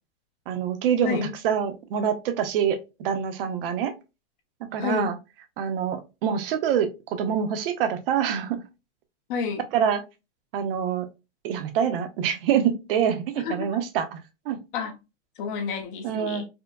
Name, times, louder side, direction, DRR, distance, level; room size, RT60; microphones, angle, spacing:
voice 1, 0.5-1.2 1.4-3.9 4.7-5.1 5.6-8.6 9.7-10.0 10.5-11.1 11.4-14.2 14.5-14.6 16.0-16.4, right 8 dB, 50° right, 0.7 m, -25 dB
voice 2, 4.8-5.1 9.3-9.6 13.4-13.7 14.7-14.9 15.4-16.4, left 6 dB, 45° left, 1.0 m, -30 dB
4.4 x 2.2 x 2.2 m
supercardioid pair, 155°, 36 cm